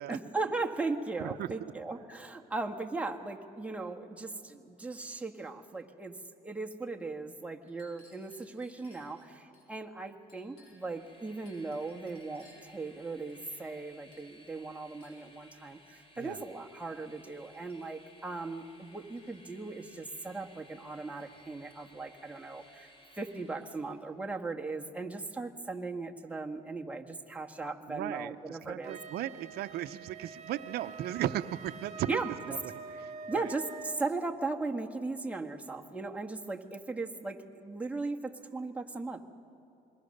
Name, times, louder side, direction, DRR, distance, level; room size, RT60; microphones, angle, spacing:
voice 1, 0.1-6.1 6.4-29.0 32.1-32.3 33.3-39.2, right 3 dB, 10° right, 2 dB, 1.5 m, -38 dB
voice 2, 1.2-1.7 16.2-16.4 27.9-32.6 33.0-33.5, right 12 dB, 70° right, 8 dB, 0.7 m, -36 dB
Chink clink, 7.6-9.7 10.3-11.0 11.5-12.8 13.3-13.8 14.1-14.4 15.0-15.3 16.0-16.1 16.9-17.0 17.4-18.1 18.9-19.5 19.8-20.1 21.2-21.9 22.6-22.8 23.0-23.9, left 1 dB, 65° left, 6.7 m, -65 dB
Train, 10.5-24.0, left 1 dB, 35° left, 3.7 m, -59 dB
Wind instrument woodwind instrument, 28.8-34.0, right 5 dB, 40° right, 1.8 m, -45 dB
26.5 x 22.0 x 6.6 m, 2.9 s
cardioid pair, 110°, 17 cm